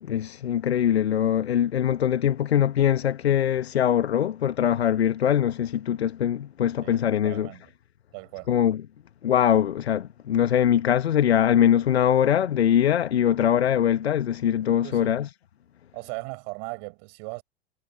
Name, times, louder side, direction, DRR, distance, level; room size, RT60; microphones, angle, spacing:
voice 1, 0.0-7.5 8.5-8.8 9.2-15.3, left 10 dB, 70° left, 1.2 m, -22 dB
voice 2, 6.8-7.6 8.1-8.5 14.8-15.2 15.9-17.4, right 40 dB or more, 45° right, 7.5 m, -38 dB
figure-of-eight pair, 95°, 33 cm